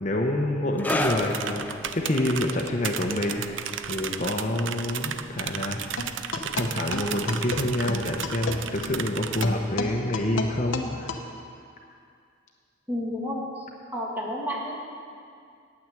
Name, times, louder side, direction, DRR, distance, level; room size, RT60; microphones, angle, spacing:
voice 1, 0.0-1.6 1.9-3.4 3.9-5.8 6.5-11.1, left 1 dB, 40° left, 1 dB, 0.8 m, -27 dB
sound 1, 0.8-8.3 9.0-9.1, left 1 dB, 10° left, 0.5 m, -35 dB
sound 2, 0.9-9.4, right 8 dB, 75° right, 0.5 m, -34 dB
sound 3, 6.0-11.2, left 3 dB, 85° left, 0.9 m, -33 dB
voice 2, 12.9-13.7 13.9-14.8, equal, 10° right, -3 dB, 1.6 m, -31 dB
9.1 x 8.8 x 7.8 m, 2.3 s
head